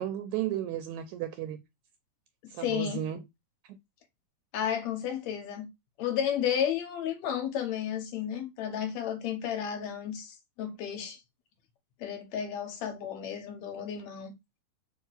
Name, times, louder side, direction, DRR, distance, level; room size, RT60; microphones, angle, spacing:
voice 1, 0.0-1.6 2.5-3.2, right 12 dB, 80° right, 1.8 m, -33 dB
voice 2, 2.4-3.0 4.5-5.7 6.0-11.2 12.0-14.3, left 9 dB, 70° left, 2.0 m, -32 dB
4.7 x 2.8 x 3.8 m
omnidirectional pair, 3.6 m